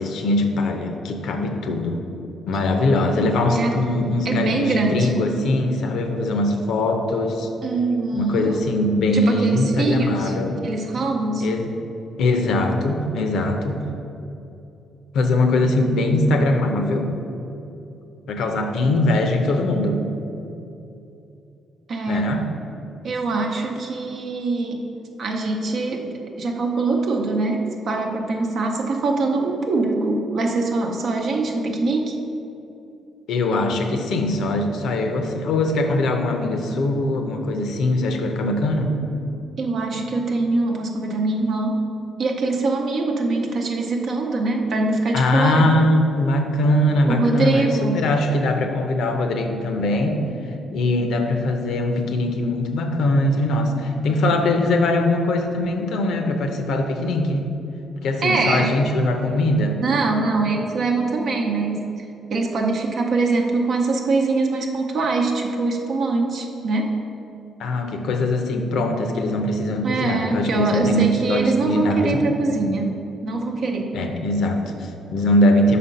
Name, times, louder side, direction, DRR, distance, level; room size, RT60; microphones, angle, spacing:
voice 1, 0.0-2.0 2.5-7.5 8.1-10.6 11.4-11.7 12.2-13.8 15.1-17.2 18.3-20.0 22.1-22.4 33.3-38.9 45.1-50.2 50.7-57.5 58.0-59.8 67.6-72.3 73.9-75.8, left 1 dB, 75° left, 5 dB, 0.7 m, -21 dB
voice 2, 4.2-5.3 7.6-8.6 9.1-10.3 10.6-11.5 21.9-22.3 23.0-24.8 25.2-32.2 39.6-41.8 42.2-45.7 47.1-48.0 58.2-58.7 59.8-66.9 69.8-73.0 73.2-73.9, right 3 dB, 60° right, 1 dB, 0.7 m, -23 dB
5.4 x 4.2 x 5.3 m, 2.8 s
cardioid pair, 90°, 0 cm